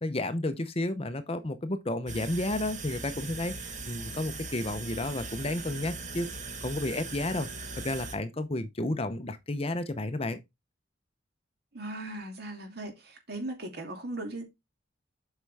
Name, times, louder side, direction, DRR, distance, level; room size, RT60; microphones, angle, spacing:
voice 1, 0.0-6.3 6.6-7.5 7.8-10.4, left 1 dB, 30° left, 0.8 m, -32 dB
sound 1, 2.1-8.2, right 3 dB, 40° right, 1.6 m, -40 dB
voice 2, 11.7-14.4, right 1 dB, 55° right, 2.5 m, -38 dB
8.1 x 5.4 x 3.4 m
head